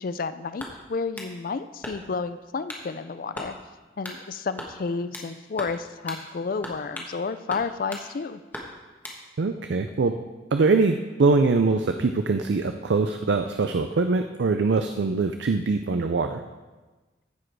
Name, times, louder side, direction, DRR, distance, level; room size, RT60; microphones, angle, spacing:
voice 1, 0.0-3.6 4.0-8.4, left 4 dB, 50° left, 13 dB, 0.4 m, -31 dB
sound 1, 0.6-1.3 1.8-2.2 2.7-2.9 3.3-3.5 4.0-4.2 4.6-5.3 5.6-5.8 6.1-6.2 6.6-7.1 7.5-8.1 8.5-9.2, left 1 dB, 10° left, 1.1 m, -38 dB
voice 2, 9.4-10.2 10.5-16.4, right 3 dB, 65° right, 7 dB, 0.5 m, -23 dB
15.0 x 5.0 x 4.7 m, 1.2 s
head